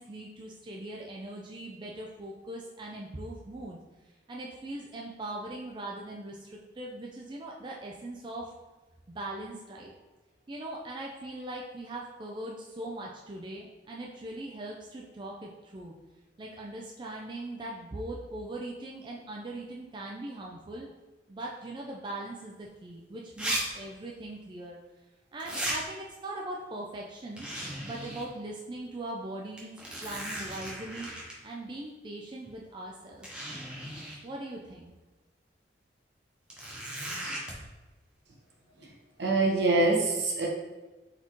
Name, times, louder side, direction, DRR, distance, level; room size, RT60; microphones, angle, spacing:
voice 1, 0.0-3.8 4.3-8.5 9.1-9.9 10.5-15.9 16.4-20.9 21.3-24.8 25.3-27.5 27.8-31.1 31.4-33.3 34.2-34.9, right 1 dB, 25° right, -2 dB, 0.4 m, -40 dB
sound 1, 22.6-22.7 23.4-23.6 23.8-23.9 25.4-25.8 27.4-28.3 28.7-28.8 29.6-31.3 32.5-32.6 33.2-34.2 36.5-37.5, right 1 dB, 5° right, 0.9 m, -36 dB
voice 2, 39.2-40.5, right 2 dB, 70° right, -3 dB, 1.1 m, -24 dB
4.1 x 4.0 x 3.0 m, 1.2 s
head